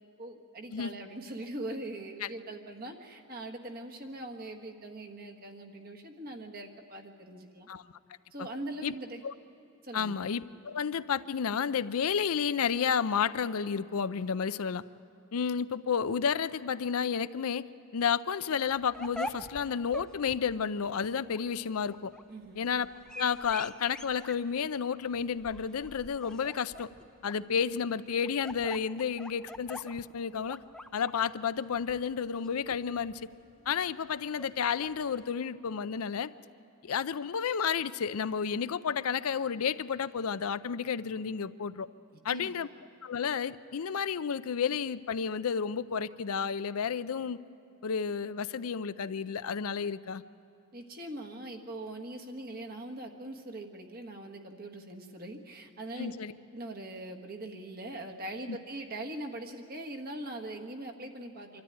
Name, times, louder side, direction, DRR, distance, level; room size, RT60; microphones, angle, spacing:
voice 1, 0.2-7.7 8.3-9.2 9.8-10.2 22.3-22.6 42.3-42.6 50.7-56.1 56.5-61.6, right 1 dB, 40° right, 2 dB, 1.5 m, -41 dB
voice 2, 9.9-14.8 15.3-17.7 17.9-22.1 22.6-22.9 23.2-26.9 27.2-30.6 30.9-33.2 33.7-36.3 36.8-41.9 42.2-42.7 43.0-47.4 47.8-50.2 56.0-56.3 58.5-58.6, left 6 dB, 80° left, 14 dB, 0.5 m, -31 dB
sound 1, 18.6-35.3, left 1 dB, 5° left, 0.5 m, -46 dB
25.5 x 13.0 x 9.9 m, 2.6 s
head